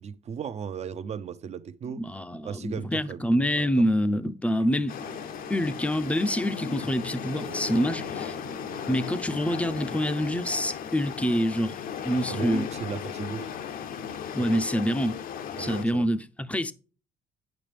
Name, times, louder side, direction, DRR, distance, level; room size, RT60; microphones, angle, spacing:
voice 1, 0.0-3.2 3.5-3.8 4.6-4.8 12.3-13.5 14.4-14.6 15.6-16.1, right 7 dB, 40° right, 0.6 m, -36 dB
voice 2, 1.9-5.0 5.5-8.3 8.9-11.8 12.0-12.7 13.2-13.4 14.3-15.2 15.6-16.7, equal, 10° left, 0.6 m, -26 dB
sound 1, 4.9-15.8, left 8 dB, 60° left, 0.7 m, -36 dB
sound 2, 5.0-11.0, right 6 dB, 75° right, 1.4 m, -48 dB
8.9 x 5.8 x 3.3 m
cardioid pair, 110°, 17 cm